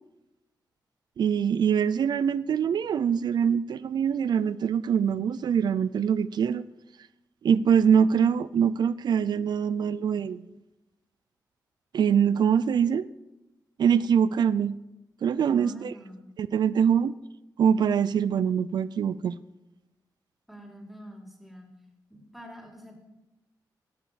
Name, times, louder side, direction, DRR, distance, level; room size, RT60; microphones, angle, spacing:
voice 1, 1.2-6.6 7.4-10.5 11.9-13.1 13.8-14.7 15.2-15.9 16.4-17.1 17.6-19.4, right 7 dB, 75° right, 17 dB, 0.5 m, -24 dB
voice 2, 15.4-16.3 20.5-21.7 22.1-23.0, right 1 dB, ahead, 0 dB, 3.8 m, -45 dB
18.0 x 7.0 x 7.5 m, 0.97 s
cardioid pair, 80°, 7 cm